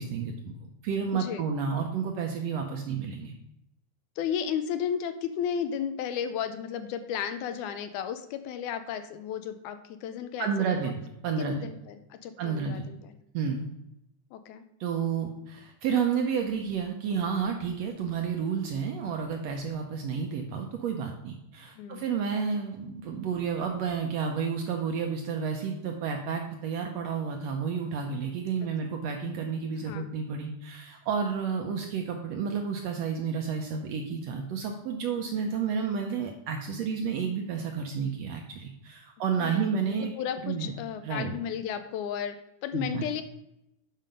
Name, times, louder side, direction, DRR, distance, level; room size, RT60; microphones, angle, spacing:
voice 1, 0.0-3.3 10.4-11.6 12.4-12.9 13.3-13.6 14.8-40.1 40.4-40.7 41.0-41.3 42.7-43.0, right 6 dB, 75° right, 3 dB, 1.6 m, -31 dB
voice 2, 1.1-1.5 4.2-10.9 11.4-13.1 14.3-14.6 21.8-22.0 29.9-30.1 39.4-42.4 42.6-43.2, left 8 dB, 80° left, 10 dB, 2.0 m, -34 dB
7.4 x 5.5 x 5.2 m, 0.83 s
omnidirectional pair, 3.6 m